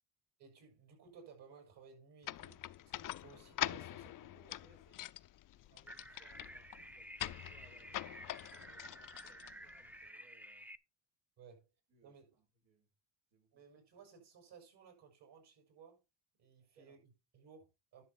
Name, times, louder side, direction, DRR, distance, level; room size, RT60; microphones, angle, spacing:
voice 1, 0.4-4.0 11.4-11.7 12.0-12.3 13.5-16.0 16.4-18.0, right 6 dB, 60° right, 6.0 m, -59 dB
sound 1, 2.2-10.1, left 13 dB, 45° left, 0.5 m, -44 dB
voice 2, 3.6-5.0 5.5-10.7 11.9-12.9 13.3-13.7 16.7-17.0, right 3 dB, 90° right, 6.7 m, -68 dB
sound 2, 5.9-10.8, right 1 dB, 5° right, 0.6 m, -53 dB
11.0 x 6.7 x 4.2 m
cardioid pair, 100°, 45 cm